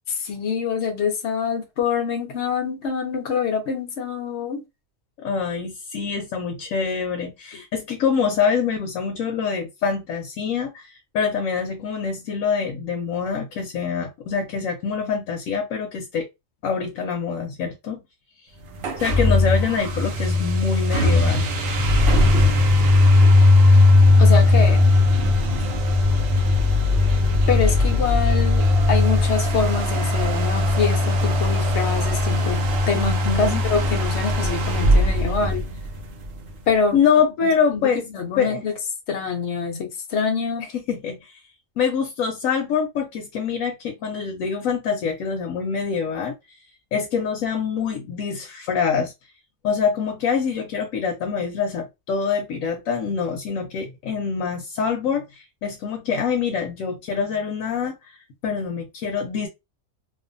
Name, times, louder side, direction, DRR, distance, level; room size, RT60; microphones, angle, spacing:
voice 1, 0.2-4.6 24.2-24.8 27.5-35.7 36.7-37.0 37.4-37.8 38.1-38.7 39.1-40.7, left 5 dB, 65° left, 0.9 m, -25 dB
voice 2, 5.2-16.3 16.6-18.0 19.0-21.5 32.9-33.6 36.9-38.1 38.4-38.6 40.7-41.4 41.8-46.3 46.9-49.1 49.6-58.2 58.4-59.5, left 6 dB, 90° left, 1.0 m, -25 dB
sound 1, 18.8-36.3, left 2 dB, 60° right, 0.7 m, -18 dB
2.5 x 2.4 x 2.5 m
omnidirectional pair, 1.4 m